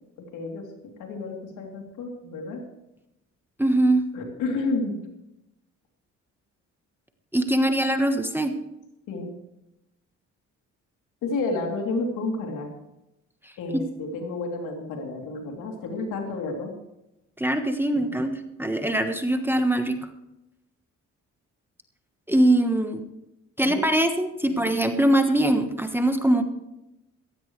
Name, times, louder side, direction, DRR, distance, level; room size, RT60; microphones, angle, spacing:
voice 1, 0.2-0.7 1.0-2.6 4.1-5.0 9.1-9.3 11.2-12.7 13.6-16.7 23.6-23.8 24.5-24.6, left 3 dB, 85° left, 1 dB, 3.3 m, -30 dB
voice 2, 3.6-4.0 7.3-8.5 17.4-20.0 22.3-23.1 23.6-26.4, right 1 dB, 5° right, 6 dB, 1.3 m, -22 dB
15.5 x 15.5 x 3.3 m, 0.90 s
cardioid pair, 90°, 30 cm